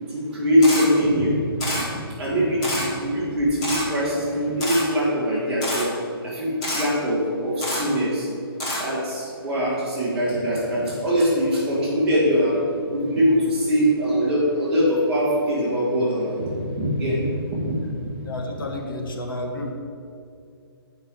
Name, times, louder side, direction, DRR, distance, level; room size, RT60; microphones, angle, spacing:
voice 1, 0.1-1.4 1.8-1.9 2.2-5.9 6.2-8.3 8.8-12.6 12.9-17.8, equal, 5° right, -10 dB, 1.7 m, -22 dB
Camera, 0.6-0.9 1.6-1.8 2.6-2.9 3.6-3.8 4.6-4.8 5.6-5.8 6.6-6.8 7.6-7.8 8.6-8.8, left 1 dB, 15° left, 1.2 m, -27 dB
voice 2, 18.2-19.7, left 1 dB, 60° left, 3 dB, 1.2 m, -31 dB
7.9 x 5.4 x 7.4 m, 2.5 s
hypercardioid pair, 180°, 13 cm